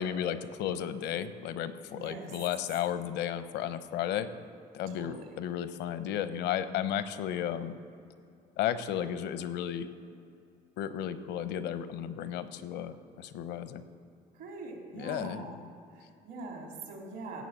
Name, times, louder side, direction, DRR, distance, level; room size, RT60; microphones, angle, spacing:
voice 1, 0.0-4.3 4.7-7.7 8.6-9.9 10.8-13.8 15.0-15.4, left 10 dB, 80° left, 12 dB, 0.8 m, -33 dB
voice 2, 1.9-2.3 4.9-5.3 14.3-15.6 15.9-17.4, right 3 dB, 80° right, 0 dB, 3.7 m, -43 dB
16.5 x 6.2 x 7.4 m, 2.6 s
supercardioid pair, 80°, 18 cm